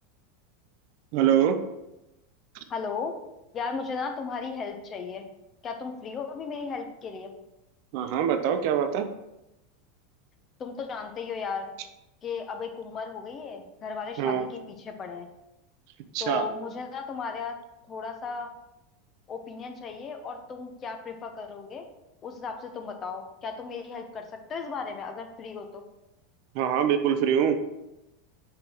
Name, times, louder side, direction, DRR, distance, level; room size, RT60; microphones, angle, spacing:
voice 1, 1.1-1.6 7.9-9.1 14.2-14.5 16.1-16.4 26.5-27.6, right 9 dB, 50° right, 8 dB, 0.6 m, -24 dB
voice 2, 2.7-3.1 3.5-5.3 5.6-7.3 10.6-11.7 12.2-15.3 16.2-17.6 17.9-18.5 19.3-21.9 22.2-25.8, left 5 dB, 30° left, 5 dB, 0.9 m, -35 dB
5.6 x 5.2 x 4.6 m, 0.93 s
figure-of-eight pair, 85°, 0 cm